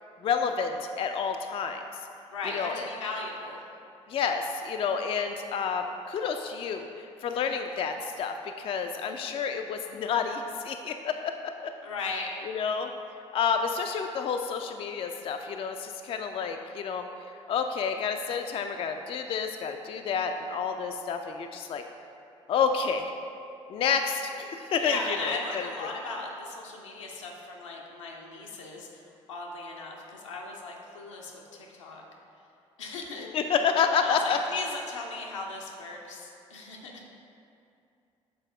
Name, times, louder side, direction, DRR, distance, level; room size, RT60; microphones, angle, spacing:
voice 1, 0.2-1.8 2.5-2.9 4.1-11.3 11.6-11.7 12.5-12.9 13.3-17.0 17.5-21.8 22.5-23.1 23.7-25.3 33.2-34.4, left 6 dB, 35° left, 5 dB, 0.4 m, -29 dB
voice 2, 2.3-3.6 11.8-12.3 24.8-29.0 29.3-32.0 32.8-33.3 34.0-37.0, left 3 dB, 80° left, -1 dB, 0.7 m, -37 dB
6.9 x 4.1 x 3.7 m, 2.6 s
figure-of-eight pair, 50°, 16 cm